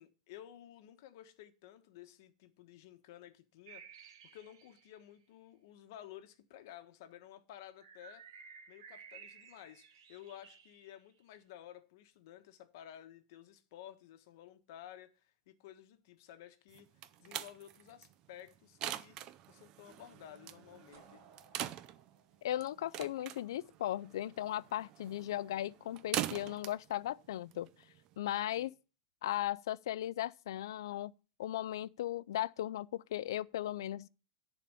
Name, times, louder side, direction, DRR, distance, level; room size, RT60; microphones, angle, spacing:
voice 1, 0.0-8.3 8.7-16.9 17.2-19.2 19.5-21.2 28.6-28.7, left 11 dB, 50° left, 1.2 m, -54 dB
sound 1, 3.7-5.0 7.8-11.0, right 7 dB, 90° right, 1.7 m, -55 dB
sound 2, 16.7-28.2, right 12 dB, 30° right, 0.5 m, -44 dB
sound 3, 20.9-23.8, right 4 dB, 45° right, 3.5 m, -63 dB
voice 2, 22.4-27.7 28.2-28.7 29.2-31.1 31.4-34.1, left 13 dB, 75° left, 0.4 m, -37 dB
10.5 x 4.3 x 6.9 m
supercardioid pair, 170°, 2 cm